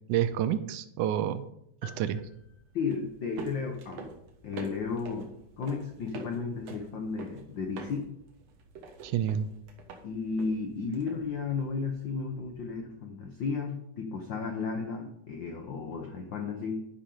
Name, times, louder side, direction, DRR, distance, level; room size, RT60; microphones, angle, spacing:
voice 1, 0.1-1.5 1.8-2.2 9.0-9.5, right 10 dB, 85° right, 12 dB, 2.1 m, -29 dB
sound 1, 1.8-3.6, left 1 dB, 30° right, 2.1 m, -53 dB
sound 2, 1.9-12.8, right 4 dB, 65° right, 2.2 m, -48 dB
voice 2, 2.7-4.1 4.4-5.3 5.6-8.1 10.0-16.8, left 5 dB, 85° left, 4 dB, 1.0 m, -33 dB
10.0 x 10.0 x 3.8 m, 0.78 s
omnidirectional pair, 3.5 m